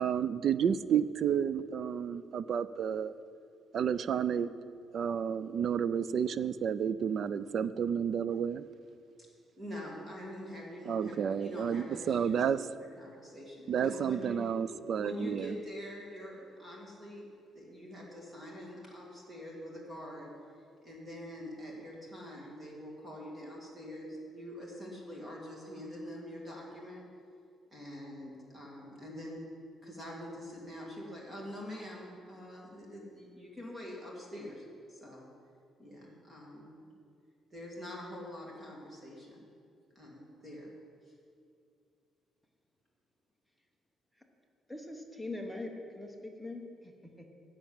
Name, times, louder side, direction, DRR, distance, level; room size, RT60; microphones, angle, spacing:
voice 1, 0.0-3.1 3.7-4.5 4.9-8.6 10.9-12.6 13.7-15.5, right 8 dB, 45° right, 15 dB, 0.3 m, -31 dB
voice 2, 9.6-12.4 12.7-14.4 15.0-17.3 17.5-20.3 20.8-27.0 27.7-29.4 29.8-35.3 35.8-36.7 37.5-39.5 40.0-40.7 41.1-41.2, equal, 15° right, -3 dB, 2.3 m, -45 dB
voice 3, 44.7-47.3, left 2 dB, ahead, 1 dB, 1.0 m, -42 dB
10.0 x 6.3 x 8.9 m, 2.4 s
cardioid pair, 175°, 0 cm